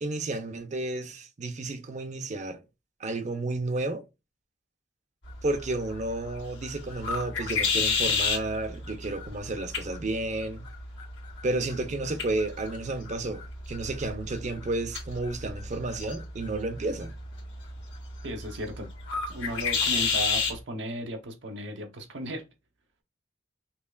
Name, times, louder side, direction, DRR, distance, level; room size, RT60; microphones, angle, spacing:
voice 1, 0.0-2.6 3.0-4.0 5.4-10.6 11.4-17.1, right 2 dB, 40° right, 0.6 m, -32 dB
sound 1, 5.2-20.6, left 5 dB, 75° left, 1.7 m, -32 dB
voice 2, 18.2-18.9 19.3-22.4, right 1 dB, 70° right, 0.9 m, -35 dB
5.6 x 2.3 x 2.2 m
head